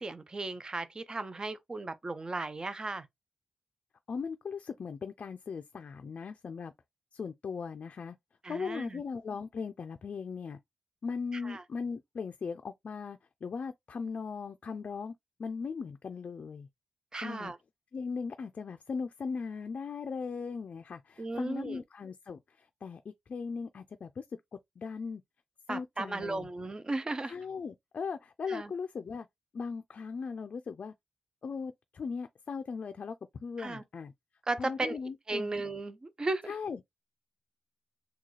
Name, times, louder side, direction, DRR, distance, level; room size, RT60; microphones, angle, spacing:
voice 1, 0.0-3.1 8.4-9.0 11.4-11.6 17.1-17.6 21.2-21.8 25.7-27.3 28.5-28.7 33.6-33.8 34.5-35.0 35.3-36.5, right 2 dB, 30° right, 0.5 m, -35 dB
voice 2, 4.1-6.7 7.1-8.2 8.5-10.6 11.0-15.1 15.4-16.7 17.2-17.5 17.9-24.3 24.8-25.2 25.7-26.5 27.3-29.3 29.5-30.9 31.4-34.1 34.6-35.5 36.5-36.8, left 5 dB, 60° left, 0.4 m, -38 dB
3.8 x 2.3 x 3.1 m
wide cardioid pair, 95°, 3 cm